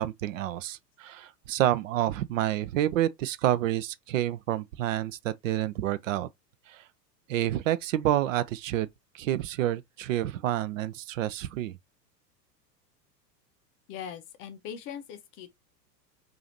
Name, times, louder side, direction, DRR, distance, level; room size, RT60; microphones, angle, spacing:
voice 1, 0.0-6.3 6.7-6.9 7.3-8.9 9.1-11.8, right 12 dB, 50° right, 0.5 m, -28 dB
voice 2, 13.9-15.6, left 8 dB, 25° left, 0.5 m, -41 dB
4.8 x 2.6 x 2.8 m
figure-of-eight pair, 90°, 50 cm